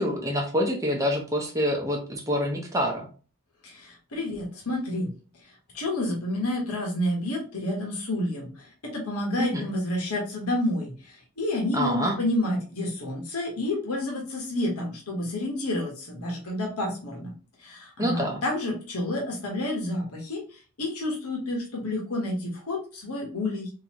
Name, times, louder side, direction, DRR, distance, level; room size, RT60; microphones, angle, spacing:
voice 1, 0.0-3.1 9.4-9.7 11.7-12.2 18.0-18.4, equal, 15° right, 0 dB, 0.7 m, -26 dB
voice 2, 3.6-5.1 5.7-8.7 8.9-10.9 11.4-17.3 17.6-20.4 20.8-23.7, left 1 dB, 85° left, -1 dB, 1.3 m, -29 dB
3.8 x 2.7 x 2.9 m, 0.38 s
head